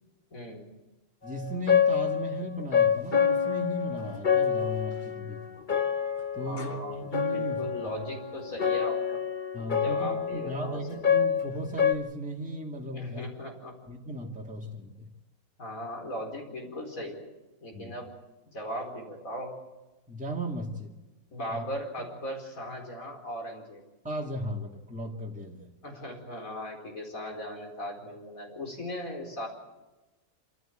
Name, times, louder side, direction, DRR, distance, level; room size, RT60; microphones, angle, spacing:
voice 1, 0.3-0.7 6.4-9.2 9.7-11.0 12.9-13.7 15.6-17.3 17.6-18.1 18.5-19.6 21.3-23.8 25.8-29.5, equal, 80° left, 2 dB, 5.0 m, -38 dB
voice 2, 1.2-5.4 6.3-7.6 9.5-13.3 13.9-14.9 17.7-17.9 20.1-20.9 21.5-21.6 24.0-25.7, equal, 5° right, -1 dB, 2.2 m, -36 dB
sound 1, 1.3-11.9, left 7 dB, 35° left, 1.4 m, -27 dB
27.0 x 14.5 x 9.1 m, 1.1 s
omnidirectional pair, 1.4 m